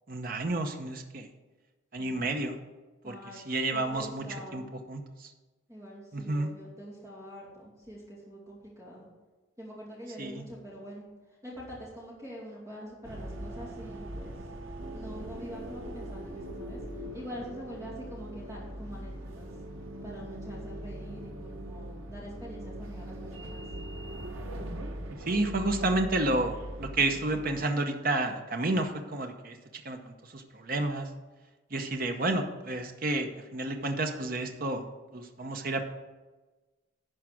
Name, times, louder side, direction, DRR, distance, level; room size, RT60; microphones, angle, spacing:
voice 1, 0.1-1.3 1.9-2.6 3.0-3.1 3.5-4.2 4.5-4.6 4.9-5.0 6.1-6.5 10.2-10.3 25.3-29.6 29.8-30.0 30.3-31.1 31.7-34.8 35.1-35.8, right 2 dB, 45° right, 5 dB, 0.8 m, -30 dB
voice 2, 2.0-2.5 3.0-3.4 3.7-4.7 5.7-9.1 9.6-11.0 11.4-14.4 14.9-16.8 17.1-19.5 20.0-23.7, equal, 15° right, -5 dB, 2.5 m, -45 dB
sound 1, 13.0-27.6, right 1 dB, 90° right, 1.0 m, -42 dB
sound 2, 14.8-26.7, right 1 dB, 60° right, 1.2 m, -46 dB
11.0 x 4.7 x 6.1 m, 1.2 s
head